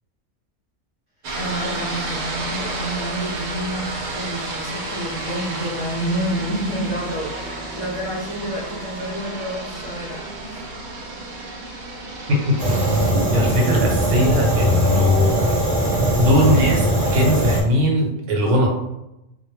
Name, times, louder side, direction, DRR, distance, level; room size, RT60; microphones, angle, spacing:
sound 1, 1.2-13.1, right 2 dB, 65° right, 0.7 m, -31 dB
voice 1, 1.3-10.6, right 1 dB, 35° left, -8 dB, 0.5 m, -29 dB
Fire, 12.6-17.6, right 1 dB, 35° right, 0.4 m, -20 dB
voice 2, 13.3-15.4 16.2-18.7, left 1 dB, 85° right, 0 dB, 1.0 m, -19 dB
2.2 x 2.1 x 3.0 m, 0.89 s
omnidirectional pair, 1.2 m